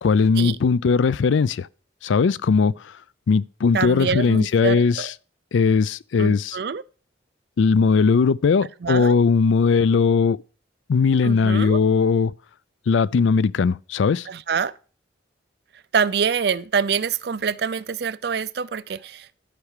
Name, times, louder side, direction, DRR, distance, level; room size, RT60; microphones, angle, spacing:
voice 1, 0.0-1.7 2.0-2.9 3.3-5.1 5.5-6.6 7.6-10.4 10.9-12.3 12.9-14.3, left 5 dB, 85° left, 0.4 m, -19 dB
voice 2, 3.7-5.1 6.2-6.8 8.8-9.1 11.2-11.8 14.3-14.7 15.9-19.4, right 6 dB, 60° right, 0.4 m, -25 dB
11.5 x 4.8 x 6.5 m
head